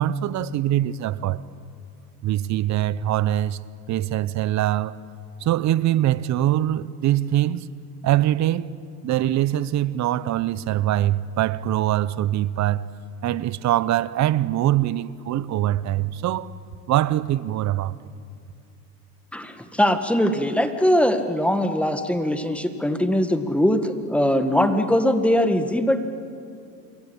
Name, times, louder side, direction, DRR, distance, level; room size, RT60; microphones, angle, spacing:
voice 1, 0.0-1.4 2.2-3.6 3.9-5.0 5.4-7.7 8.0-8.7 9.0-12.8 13.2-16.5 16.9-18.0, right 13 dB, 35° right, 0.8 m, -23 dB
voice 2, 19.3-26.0, equal, ahead, 1.8 m, -21 dB
27.5 x 22.0 x 8.8 m
supercardioid pair, 110°, 50 cm